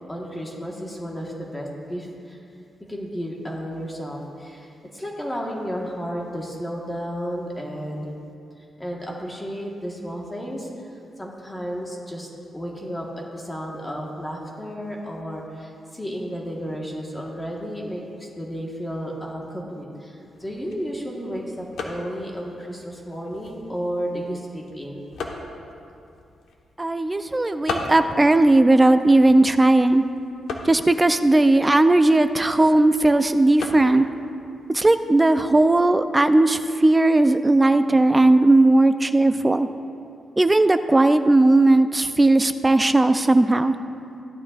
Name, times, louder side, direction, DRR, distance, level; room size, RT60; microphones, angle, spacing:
voice 1, 0.1-2.4 2.8-8.1 8.6-12.3 12.5-25.0, equal, 10° left, -2 dB, 1.4 m, -32 dB
sound 1, 20.2-35.8, left 3 dB, 85° left, 1.2 m, -39 dB
voice 2, 26.8-30.0 30.6-34.0 34.7-39.7 40.4-43.8, right 2 dB, 15° right, 10 dB, 0.4 m, -17 dB
16.0 x 11.5 x 2.5 m, 2.6 s
cardioid pair, 130°, 0 cm